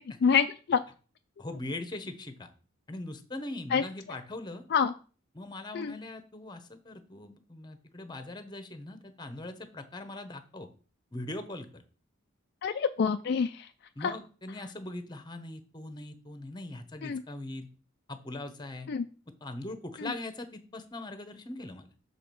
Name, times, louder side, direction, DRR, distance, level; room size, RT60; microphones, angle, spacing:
voice 1, 0.2-0.8 3.7-3.8 4.7-4.9 5.7-5.9 12.6-13.7 14.0-14.2 17.0-17.2 18.9-19.0 20.0-20.1, left 6 dB, 55° left, 8 dB, 0.3 m, -27 dB
voice 2, 1.4-2.5 2.9-4.6 5.3-10.7 11.1-11.8 13.9-17.7 18.1-18.9 19.4-21.9, left 2 dB, 20° left, 9 dB, 0.9 m, -41 dB
6.6 x 4.8 x 5.3 m, 0.38 s
head